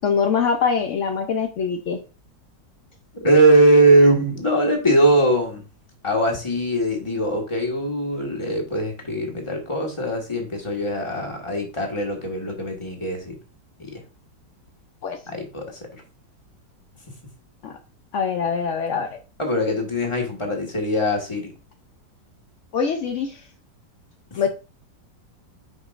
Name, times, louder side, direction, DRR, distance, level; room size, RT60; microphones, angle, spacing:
voice 1, 0.0-2.0 15.0-15.2 17.6-17.8 18.1-19.2 22.7-23.4 24.3-24.5, left 6 dB, 70° left, 5 dB, 0.7 m, -23 dB
voice 2, 3.1-5.6 6.0-13.4 13.8-13.9 15.3-15.7 19.4-21.5, right 1 dB, 15° left, 1 dB, 1.5 m, -21 dB
9.4 x 5.0 x 2.5 m, 0.33 s
omnidirectional pair, 2.0 m